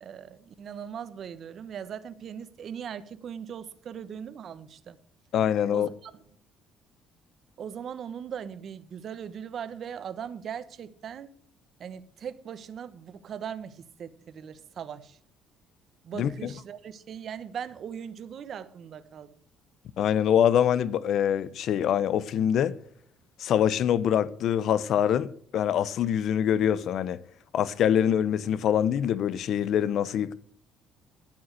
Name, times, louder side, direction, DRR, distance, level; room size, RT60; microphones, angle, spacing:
voice 1, 0.0-5.0 5.7-6.1 7.6-11.3 11.8-15.2 16.0-19.3, right 8 dB, 50° right, 1.2 m, -39 dB
voice 2, 5.3-5.9 16.1-16.5 20.0-22.8 23.4-27.2 27.5-30.3, left 9 dB, 65° left, 0.8 m, -24 dB
12.0 x 8.8 x 8.0 m
cardioid pair, 110°, 0 cm